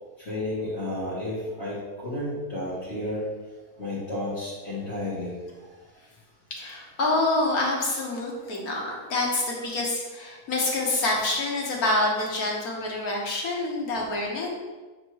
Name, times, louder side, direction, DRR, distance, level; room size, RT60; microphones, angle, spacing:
voice 1, 0.2-3.2 3.8-5.3, left 1 dB, 45° left, -11 dB, 1.9 m, -32 dB
voice 2, 6.5-14.5, left 2 dB, 75° left, -2 dB, 1.7 m, -27 dB
7.9 x 3.3 x 4.6 m, 1.2 s
omnidirectional pair, 1.6 m